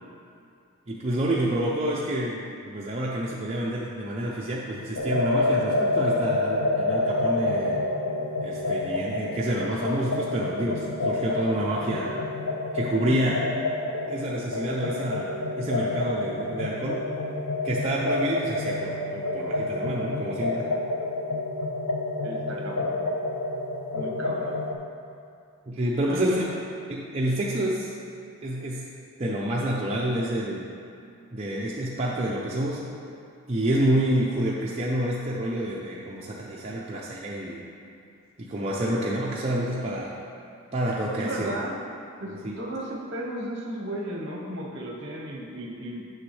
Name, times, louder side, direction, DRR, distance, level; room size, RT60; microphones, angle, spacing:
voice 1, 0.9-7.8 8.4-12.1 12.7-13.5 14.1-17.1 17.6-20.7 25.7-26.4 26.9-27.9 28.4-28.9 29.2-30.7 31.3-32.9 33.5-37.7 38.4-40.2 40.7-41.5 42.3-42.5, right 1 dB, 30° right, -5 dB, 0.5 m, -28 dB
sound 1, 5.0-24.7, left 2 dB, 70° left, 0.7 m, -28 dB
voice 2, 22.2-23.0 23.9-24.6 26.1-26.5 41.2-41.8 42.2-46.0, right 1 dB, 55° right, -2 dB, 1.1 m, -35 dB
9.1 x 6.0 x 3.3 m, 2.4 s
head